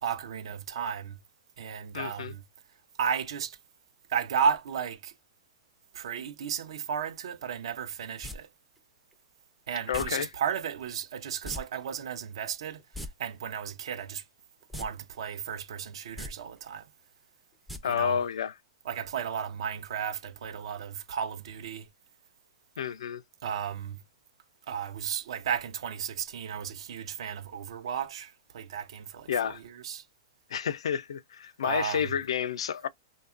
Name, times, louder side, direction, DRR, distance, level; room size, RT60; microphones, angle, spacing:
voice 1, 0.0-1.2 1.6-2.4 3.0-3.6 4.1-5.1 5.9-8.5 9.7-14.2 14.7-16.9 17.8-18.2 18.8-21.9 23.4-24.0 24.7-30.1 31.6-32.1, right 7 dB, 70° right, 0.5 m, -34 dB
voice 2, 1.9-2.3 9.9-10.3 17.8-18.5 22.8-23.2 29.3-29.6 30.5-32.9, left 8 dB, 90° left, 0.3 m, -30 dB
sound 1, 8.2-8.4 9.9-10.1 11.4-11.6 11.9-12.0 12.8-13.1 14.7-14.9 15.2-15.3 16.1-16.3 17.7-17.8 18.1-18.2, left 1 dB, ahead, 0.4 m, -38 dB
2.8 x 2.2 x 2.4 m
hypercardioid pair, 150°, 3 cm